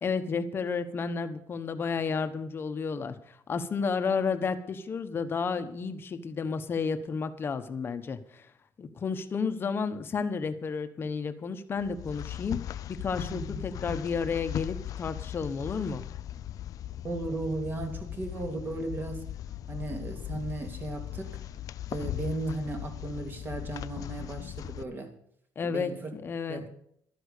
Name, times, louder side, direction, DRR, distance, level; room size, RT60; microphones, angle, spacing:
voice 1, 0.0-8.5 8.8-16.0 25.5-26.6, left 5 dB, 30° left, 9 dB, 1.2 m, -32 dB
sound 1, 11.8-24.8, left 12 dB, 55° left, 0.5 m, -38 dB
voice 2, 13.3-13.6 17.0-19.3 19.7-21.4 21.9-25.1 25.6-26.1 26.5-26.7, right 2 dB, 30° right, 4 dB, 2.7 m, -36 dB
13.0 x 10.0 x 6.7 m, 0.68 s
cardioid pair, 160°, 7 cm